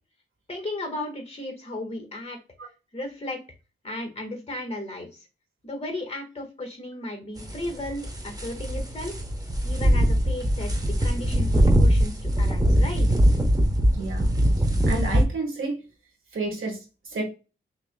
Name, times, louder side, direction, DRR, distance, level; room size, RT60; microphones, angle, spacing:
voice 1, 0.5-2.4 2.9-3.4 3.8-5.2 5.6-9.1 9.6-13.1, left 1 dB, 30° left, 3 dB, 1.5 m, -35 dB
sound 1, 7.4-15.2, equal, 20° right, 0.9 m, -22 dB
voice 2, 13.9-14.3 14.8-15.8 16.3-17.2, right 3 dB, 85° right, 1 dB, 1.5 m, -30 dB
5.9 x 2.9 x 2.2 m, 0.30 s
wide cardioid pair, 85°, 20 cm